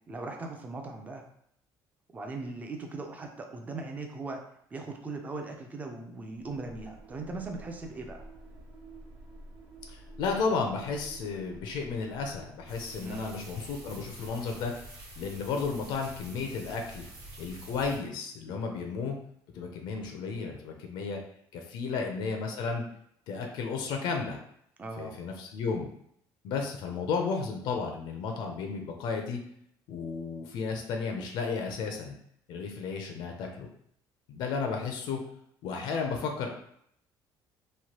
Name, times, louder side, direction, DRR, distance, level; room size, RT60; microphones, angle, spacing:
voice 1, 0.1-1.2 2.1-4.4 4.7-8.3 13.0-13.4 21.9-22.0 24.8-25.2, right 3 dB, 20° right, 3 dB, 0.4 m, -39 dB
sound 1, 6.3-14.1, right 1 dB, 85° right, 1.3 m, -50 dB
voice 2, 9.9-14.7 15.2-17.1 17.4-19.1 19.5-21.2 21.5-22.8 23.3-24.4 25.0-25.9 26.4-29.4 29.9-32.2 32.5-33.7 34.3-35.2 35.6-36.5, left 5 dB, 70° left, 3 dB, 0.5 m, -33 dB
sound 2, 12.7-18.0, right 1 dB, 45° right, 1.2 m, -47 dB
3.1 x 2.2 x 2.8 m, 0.70 s
cardioid pair, 145°, 8 cm